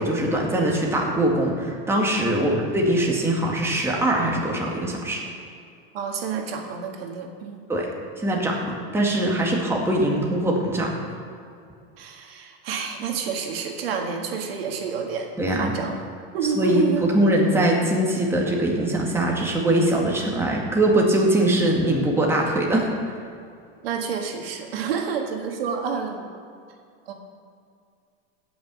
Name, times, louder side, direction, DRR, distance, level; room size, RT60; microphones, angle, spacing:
voice 1, 0.0-5.2 7.7-7.9 8.2-10.9 15.4-15.8 16.6-22.9, right 1 dB, 10° right, -2 dB, 2.0 m, -22 dB
voice 2, 5.9-7.7 12.0-16.0 16.3-17.1 23.8-26.3 27.1-27.2, right 6 dB, 90° right, 2 dB, 1.7 m, -29 dB
16.5 x 6.2 x 6.2 m, 2.4 s
supercardioid pair, 135°, 29 cm